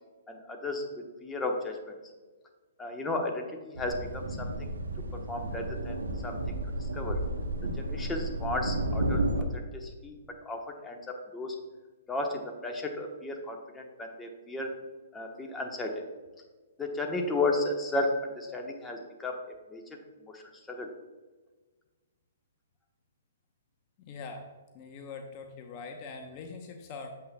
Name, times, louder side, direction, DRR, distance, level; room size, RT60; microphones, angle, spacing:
voice 1, 0.3-1.9 2.8-4.7 5.1-6.0 6.2-7.2 7.6-9.2 9.5-11.5 12.1-14.7 15.1-16.0 16.8-19.8 20.3-20.4 20.7-20.9, left 2 dB, 10° left, 2 dB, 1.1 m, -34 dB
sound 1, 3.8-9.4, right 1 dB, 90° right, 1.0 m, -32 dB
voice 2, 24.0-27.1, left 4 dB, 40° left, 4 dB, 0.8 m, -43 dB
8.5 x 7.6 x 2.3 m, 1.3 s
hypercardioid pair, 130°, 0 cm